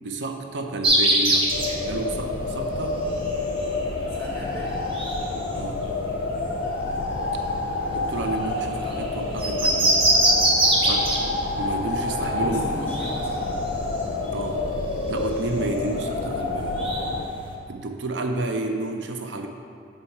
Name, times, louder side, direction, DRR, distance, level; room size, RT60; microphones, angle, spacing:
voice 1, 0.0-1.5 1.8-3.0 5.5-5.8 7.9-10.0 10.8-11.2 11.6-12.6 14.3-14.6 15.1-16.8 17.7-19.5, right 2 dB, 75° right, 5 dB, 0.5 m, -31 dB
sound 1, 0.8-17.5, right 1 dB, 30° right, 0.8 m, -26 dB
sound 2, 1.5-17.3, left 2 dB, 60° left, 0.5 m, -28 dB
voice 2, 4.1-4.8 12.1-13.5, equal, 15° left, -5 dB, 1.5 m, -35 dB
7.1 x 4.5 x 4.5 m, 2.5 s
head